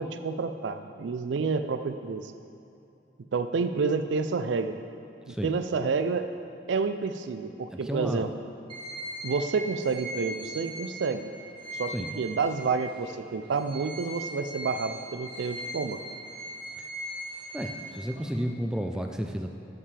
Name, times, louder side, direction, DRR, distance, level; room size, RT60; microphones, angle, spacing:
voice 1, 0.0-2.3 3.3-4.8 5.3-6.3 6.7-8.3 9.2-11.3 11.8-16.0, right 4 dB, 80° right, 9 dB, 0.4 m, -29 dB
voice 2, 7.8-8.3 11.9-12.2 17.5-19.5, equal, 5° right, 4 dB, 0.3 m, -32 dB
sound 1, 8.7-13.1 13.5-18.4, right 1 dB, 25° right, 1.1 m, -40 dB
12.0 x 5.7 x 3.3 m, 2.8 s
head